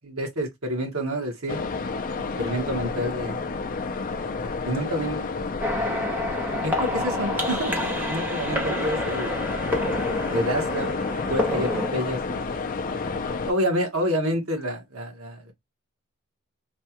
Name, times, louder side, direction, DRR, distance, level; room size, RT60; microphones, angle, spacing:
voice 1, 0.0-2.0 2.4-3.4 4.6-5.3 6.6-9.4 10.3-11.0 11.3-12.5 13.5-15.5, equal, 80° right, 1.3 m, -28 dB
sound 1, 1.5-13.5, left 4 dB, 40° left, 0.5 m, -30 dB
sound 2, 5.6-11.9, left 1 dB, 10° right, 0.8 m, -29 dB
3.3 x 2.3 x 2.8 m
head